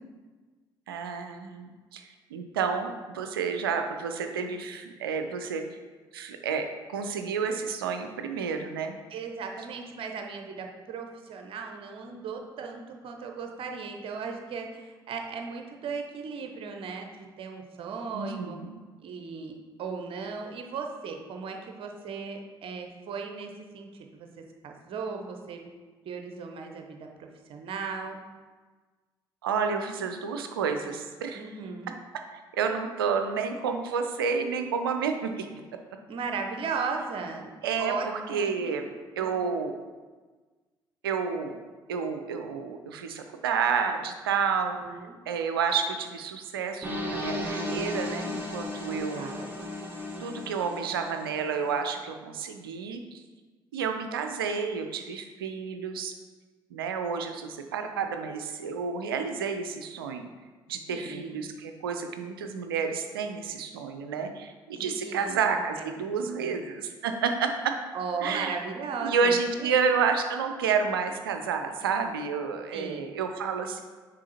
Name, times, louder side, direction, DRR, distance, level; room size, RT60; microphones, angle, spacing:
voice 1, 0.9-5.6 6.1-8.9 18.1-18.8 29.4-31.4 32.5-35.5 37.6-38.9 39.2-39.7 41.0-41.6 41.9-45.0 45.3-49.3 50.2-53.2 53.7-56.1 56.7-60.3 60.7-67.7 68.2-68.5 69.0-73.8, right 6 dB, 75° right, 6 dB, 0.5 m, -30 dB
voice 2, 9.1-18.6 19.0-19.5 19.8-25.7 26.0-28.2 31.3-31.9 36.1-37.5 37.8-38.8 39.2-39.3 44.7-45.2 48.9-49.5 60.9-61.4 64.7-66.1 66.4-66.5 67.9-69.8 72.7-73.1, right 5 dB, 50° right, 3 dB, 0.8 m, -37 dB
sound 1, 46.8-51.7, left 1 dB, 15° right, 1.6 m, -35 dB
6.2 x 4.1 x 4.2 m, 1.4 s
figure-of-eight pair, 50°, 12 cm